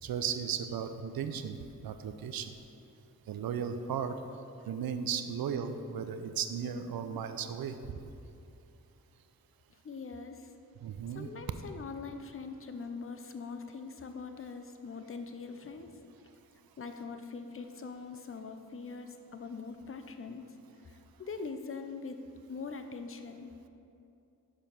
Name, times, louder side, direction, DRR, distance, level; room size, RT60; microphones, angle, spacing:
voice 1, 0.0-2.5 3.3-4.2 4.7-8.0 10.8-11.3, right 7 dB, 80° right, 9 dB, 0.5 m, -36 dB
voice 2, 9.8-10.5 11.1-16.0 16.8-20.4 20.9-22.2 22.5-23.5, left 4 dB, 40° left, 7 dB, 0.6 m, -42 dB
6.1 x 5.1 x 5.7 m, 2.7 s
cardioid pair, 50°, 35 cm